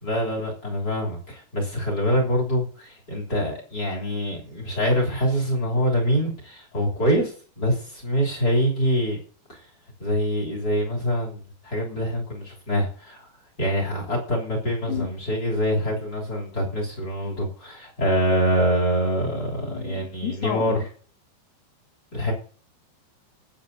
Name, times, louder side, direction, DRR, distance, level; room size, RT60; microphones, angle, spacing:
voice 1, 0.0-9.2 9.5-9.6 10.0-13.3 13.6-20.9 22.1-22.3, equal, 25° left, 1 dB, 3.2 m, -25 dB
voice 2, 19.7-20.8, left 9 dB, 70° left, 4 dB, 3.7 m, -31 dB
20.0 x 8.3 x 2.8 m, 0.42 s
omnidirectional pair, 5.0 m